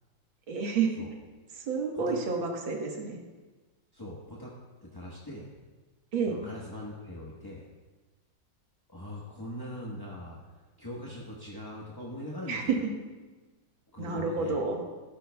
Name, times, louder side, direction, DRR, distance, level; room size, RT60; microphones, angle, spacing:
voice 1, 0.5-0.9 1.7-3.2 6.1-6.4 12.5-12.9 14.0-14.8, right 5 dB, 80° right, 1 dB, 2.2 m, -29 dB
voice 2, 3.9-4.5 4.9-5.5 6.2-7.6 8.9-10.4 10.8-12.7 13.9-14.6, left 1 dB, 15° left, -5 dB, 0.9 m, -41 dB
14.0 x 13.0 x 2.3 m, 1.3 s
omnidirectional pair, 2.1 m